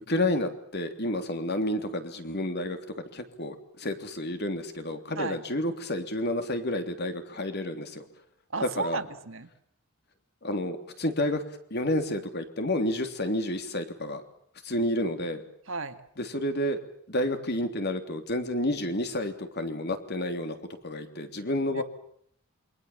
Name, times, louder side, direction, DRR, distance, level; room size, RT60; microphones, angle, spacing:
voice 1, 0.1-2.8 3.1-8.0 8.6-9.0 10.4-11.4 11.7-14.2 14.6-15.4 16.2-16.8 17.1-20.6 20.8-21.8, left 1 dB, 50° left, 7 dB, 3.3 m, -30 dB
voice 2, 8.5-9.5 15.7-16.0 21.7-21.8, right 4 dB, 60° right, 9 dB, 1.9 m, -33 dB
28.0 x 23.5 x 7.4 m, 0.66 s
head